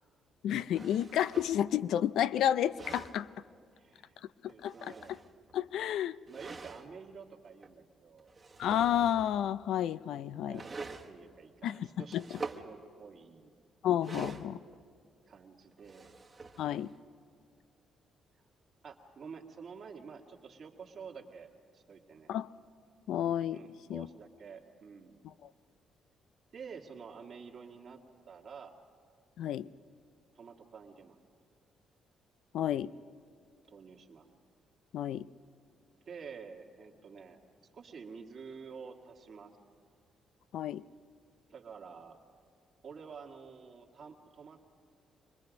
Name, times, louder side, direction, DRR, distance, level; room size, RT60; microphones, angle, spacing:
voice 1, 0.4-3.3 4.4-4.9 5.5-6.2 8.6-10.6 11.6-11.9 12.1-12.2 13.8-14.6 16.6-16.9 22.3-22.5 23.1-23.6 23.9-24.1 29.4-29.7 32.5-32.9 34.9-35.3 40.5-40.8, left 10 dB, 80° left, 16 dB, 0.4 m, -31 dB
sound 1, 0.7-1.6 2.5-3.2 4.5-5.6 6.3-6.9 7.6-7.7 8.2-9.4 10.5-11.1 12.1-12.6 14.0-14.8 15.7-17.0, right 3 dB, 30° right, 1.3 m, -45 dB
voice 2, 3.7-5.1 6.3-8.3 10.3-10.8 11.0-13.5 15.3-16.2 18.8-22.3 23.5-25.2 26.5-28.8 30.4-31.2 33.7-34.3 36.1-37.4 37.7-39.6 41.5-42.2 42.8-44.6, right 5 dB, 55° right, 2 dB, 1.9 m, -49 dB
25.0 x 20.0 x 5.3 m, 2.2 s
cardioid pair, 90°, 0 cm